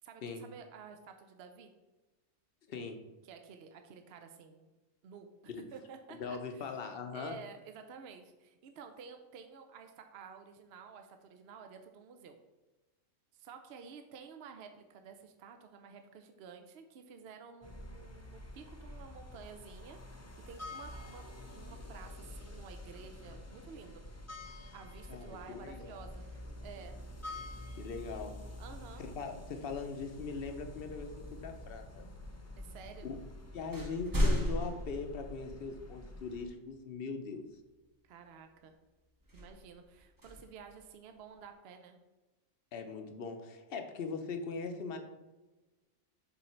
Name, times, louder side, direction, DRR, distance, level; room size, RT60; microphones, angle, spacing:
voice 1, 0.0-1.7 3.2-4.7 5.0-5.3 5.5-6.7 7.1-12.4 13.3-20.0 20.4-21.2 21.5-24.0 24.7-26.3 26.6-27.0 28.6-29.0 32.6-33.1 38.0-38.7 39.3-42.0, right 6 dB, 60° right, 6 dB, 0.8 m, -51 dB
voice 2, 2.7-3.0 5.5-5.6 6.2-7.4 25.1-25.9 27.8-28.3 29.0-32.0 33.0-33.2 33.5-37.4 42.7-45.0, left 4 dB, 55° left, 6 dB, 0.8 m, -40 dB
sound 1, 17.6-36.5, left 1 dB, 20° left, 0.4 m, -48 dB
sound 2, 26.2-27.9 30.0-30.2 31.0-31.7 32.6-32.7 33.1-36.0 36.5-36.6 39.2-41.4, equal, 20° right, 0.8 m, -37 dB
7.1 x 3.9 x 4.4 m, 1.1 s
omnidirectional pair, 1.4 m